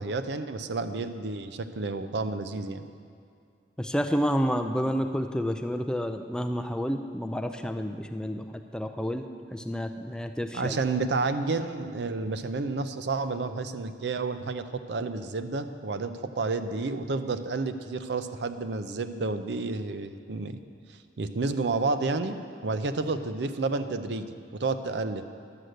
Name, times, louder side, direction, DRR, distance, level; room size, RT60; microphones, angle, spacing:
voice 1, 0.0-2.8 10.5-20.6 21.2-22.4 22.6-25.2, right 3 dB, 70° right, 10 dB, 0.5 m, -30 dB
voice 2, 3.8-9.3 9.5-10.8, equal, 5° left, 5 dB, 0.4 m, -29 dB
11.0 x 6.5 x 7.7 m, 2.3 s
head